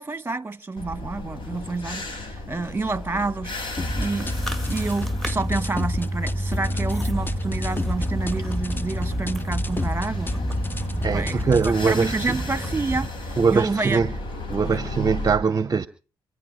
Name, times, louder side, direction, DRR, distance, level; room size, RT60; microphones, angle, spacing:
voice 1, 0.0-3.7 4.0-4.3 4.7-10.4 11.1-13.1 13.5-14.0 14.7-14.8, right 3 dB, 25° right, 1.4 m, -28 dB
sound 1, 0.8-15.3, left 2 dB, 65° left, 7.4 m, -35 dB
sound 2, 3.8-11.8, left 2 dB, 20° left, 0.9 m, -30 dB
sound 3, 3.9-13.1, right 1 dB, ahead, 2.4 m, -30 dB
voice 2, 11.0-12.4 13.4-14.1 14.5-15.9, right 5 dB, 40° right, 0.7 m, -22 dB
26.5 x 9.5 x 4.6 m
cardioid pair, 65°, 9 cm